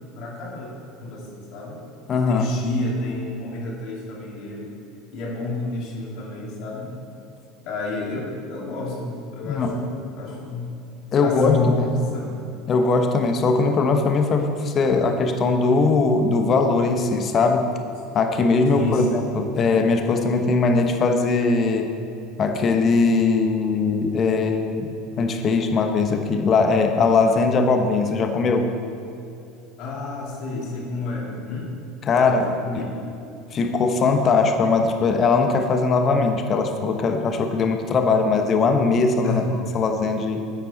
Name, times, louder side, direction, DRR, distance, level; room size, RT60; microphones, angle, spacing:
voice 1, 0.2-0.7 1.0-1.8 2.1-4.7 5.1-6.9 7.7-10.7 11.2-12.4 18.7-19.2 29.8-31.7 32.1-32.9 39.2-39.6, left 2 dB, 55° left, -2 dB, 2.4 m, -29 dB
voice 2, 2.1-2.5 9.4-9.8 11.1-11.7 12.7-17.7 18.1-22.0 22.4-24.9 25.2-28.7 32.1-32.5 32.7-32.8 33.5-39.4 39.7-40.4, left 4 dB, 35° left, 5 dB, 1.0 m, -20 dB
10.0 x 8.3 x 4.1 m, 2.6 s
figure-of-eight pair, 70°, 0 cm